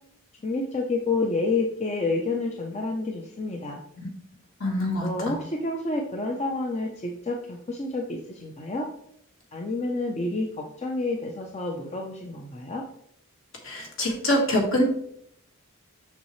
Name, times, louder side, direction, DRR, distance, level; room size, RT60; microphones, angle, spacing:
voice 1, 0.4-3.8 5.0-8.9 9.5-12.8, left 3 dB, 30° left, 1 dB, 0.6 m, -29 dB
voice 2, 4.6-5.3 13.6-14.8, left 1 dB, 60° left, 0 dB, 1.9 m, -25 dB
6.8 x 6.4 x 3.1 m, 0.70 s
head